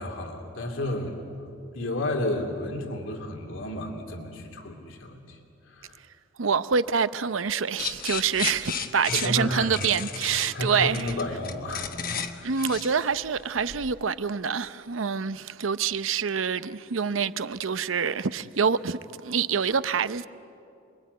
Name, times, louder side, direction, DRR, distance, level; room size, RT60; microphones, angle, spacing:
voice 1, 0.0-5.4 5.7-6.0 9.1-9.7 10.5-12.5, left 1 dB, 80° left, 2.7 m, -32 dB
voice 2, 6.4-11.2 12.4-20.3, right 6 dB, 85° right, 0.7 m, -26 dB
sound 1, 7.8-13.9, left 7 dB, 45° left, 1.2 m, -34 dB
28.0 x 22.0 x 9.4 m
head